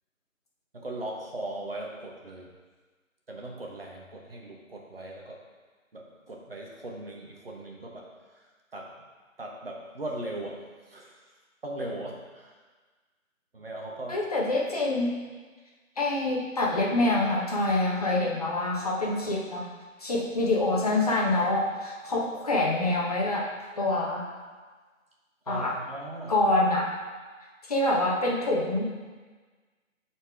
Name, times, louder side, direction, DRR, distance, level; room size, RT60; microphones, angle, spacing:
voice 1, 0.7-2.5 3.3-5.4 5.9-9.0 9.4-12.6 13.5-14.2 25.5-26.3, right 1 dB, 45° right, -1 dB, 1.3 m, -39 dB
voice 2, 14.1-15.2 16.0-19.6 20.0-23.5 23.8-24.3 25.5-25.7 26.3-26.9 27.7-28.8, left 2 dB, 30° left, -3 dB, 1.2 m, -26 dB
12.5 x 4.4 x 3.5 m, 1.4 s
figure-of-eight pair, 155°, 41 cm